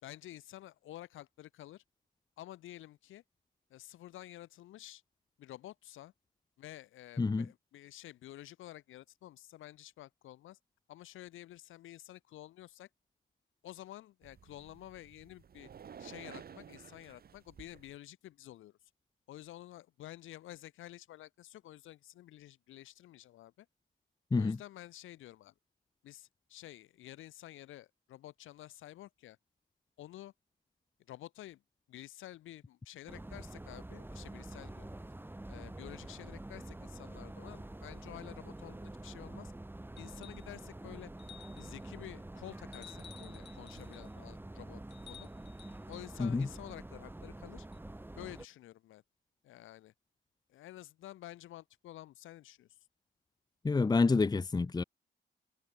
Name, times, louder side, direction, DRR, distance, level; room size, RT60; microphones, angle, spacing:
voice 1, 0.0-1.8 2.4-3.2 3.7-5.0 5.4-6.1 6.6-10.6 10.9-12.9 13.6-15.7 16.0-18.8 19.3-23.7 24.3-25.5 26.0-29.4 30.0-30.3 31.1-31.6 31.9-34.9 35.5-39.5 40.0-41.1 41.5-45.3 45.9-47.7 48.1-49.0 49.4-49.9 50.5-52.8, left 14 dB, 85° left, 4.4 m, -50 dB
sound 1, 14.2-17.9, right 7 dB, 50° right, 3.6 m, -53 dB
sound 2, 33.1-48.4, right 1 dB, 10° right, 4.7 m, -47 dB
sound 3, 40.0-40.5 41.2-41.8 42.7-44.1 44.9-46.1 47.7-47.8, left 9 dB, 60° left, 5.5 m, -55 dB
voice 2, 53.6-54.8, left 4 dB, 20° left, 0.9 m, -28 dB
cardioid pair, 90°, 20 cm